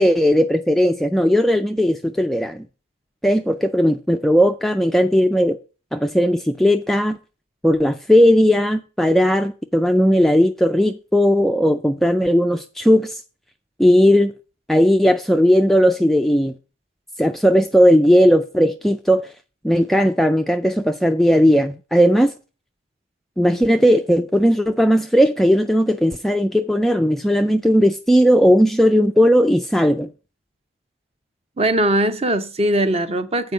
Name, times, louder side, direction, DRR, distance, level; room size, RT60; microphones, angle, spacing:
voice 1, 0.0-2.6 3.2-5.6 5.9-7.2 7.6-13.2 13.8-14.3 14.7-16.5 17.2-19.3 19.6-22.3 23.4-30.1, equal, ahead, 0.3 m, -16 dB
voice 2, 31.6-33.5, right 1 dB, 30° right, 0.8 m, -20 dB
7.9 x 4.6 x 6.7 m
head